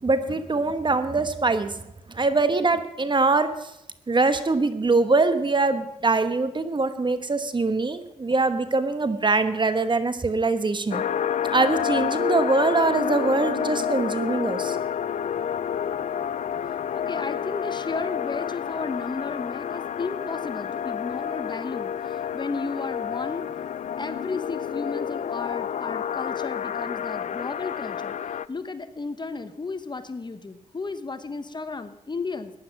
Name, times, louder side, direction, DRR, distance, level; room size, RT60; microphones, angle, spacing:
voice 1, 0.0-1.7 2.1-3.7 4.1-11.0 11.5-14.8, right 3 dB, 30° right, 11 dB, 1.2 m, -23 dB
sound 1, 10.9-28.5, left 8 dB, 50° left, 0.5 m, -29 dB
voice 2, 16.9-23.5 24.0-28.1 28.5-32.5, left 4 dB, 30° left, 11 dB, 1.1 m, -34 dB
15.0 x 10.0 x 6.0 m, 0.86 s
cardioid pair, 65°, 15 cm